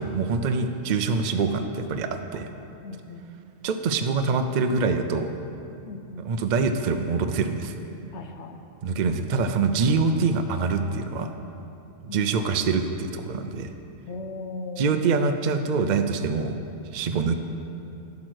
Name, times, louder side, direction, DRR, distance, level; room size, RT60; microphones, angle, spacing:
voice 1, 0.0-2.5 3.6-5.3 6.2-7.7 8.8-11.3 12.1-13.7 14.8-16.6 16.9-17.4, right 4 dB, 65° right, 7 dB, 0.4 m, -25 dB
voice 2, 2.8-3.3 5.9-6.3 8.1-8.6 8.8-9.0 12.1-12.3 14.1-14.9, left 3 dB, 60° left, 5 dB, 1.0 m, -38 dB
10.5 x 6.4 x 6.2 m, 2.7 s
omnidirectional pair, 1.4 m